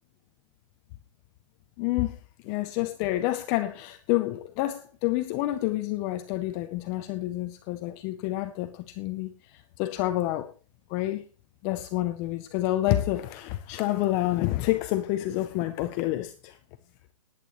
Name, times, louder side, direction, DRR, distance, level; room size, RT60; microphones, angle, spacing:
voice 1, 1.8-2.2 2.4-10.5 10.9-11.2 11.6-16.6, left 15 dB, 15° left, 0.5 m, -28 dB
19.5 x 8.9 x 3.0 m
hypercardioid pair, 170°, 18 cm